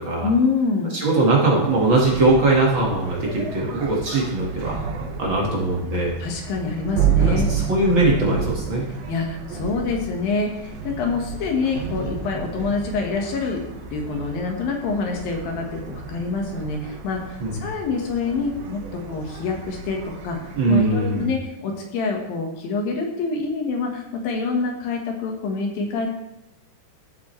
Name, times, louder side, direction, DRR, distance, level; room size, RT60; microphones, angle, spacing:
voice 1, 0.2-0.9 6.2-7.5 9.1-18.8 19.1-20.0 20.2-20.4 20.7-26.1, left 4 dB, 65° left, 1 dB, 2.9 m, -26 dB
voice 2, 0.9-4.8 5.2-6.1 7.3-8.9 17.4-17.7 20.5-21.3, right 2 dB, 50° right, -3 dB, 1.5 m, -20 dB
sound 1, 1.6-21.3, right 6 dB, 70° right, 2.6 m, -30 dB
15.0 x 7.2 x 3.2 m, 0.92 s
omnidirectional pair, 4.7 m